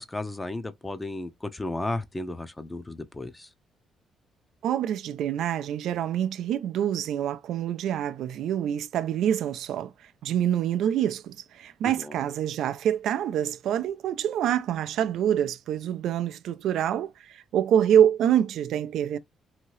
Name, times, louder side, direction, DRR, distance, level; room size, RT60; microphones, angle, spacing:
voice 1, 0.0-3.5 11.8-12.2, left 2 dB, 15° left, 0.6 m, -34 dB
voice 2, 4.6-19.2, right 10 dB, 80° right, 0.3 m, -26 dB
2.8 x 2.7 x 3.0 m
cardioid pair, 90°, 0 cm